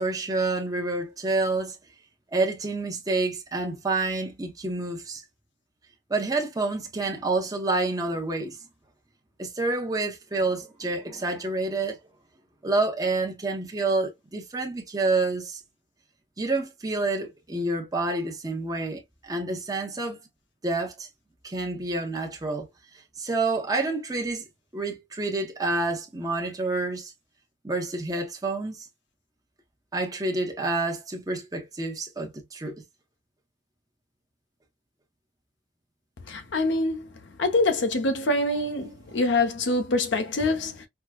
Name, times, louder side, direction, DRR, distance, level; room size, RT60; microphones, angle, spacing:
voice 1, 0.0-1.8 2.3-5.2 6.1-8.6 9.4-12.0 12.6-15.6 16.4-20.2 20.6-21.1 21.4-22.7 23.2-24.4 24.7-27.1 27.6-28.8 29.9-32.7, right 2 dB, 20° right, 0.7 m, -28 dB
voice 2, 36.3-37.1 37.4-40.9, left 2 dB, 75° left, 0.7 m, -25 dB
4.5 x 2.1 x 2.2 m
head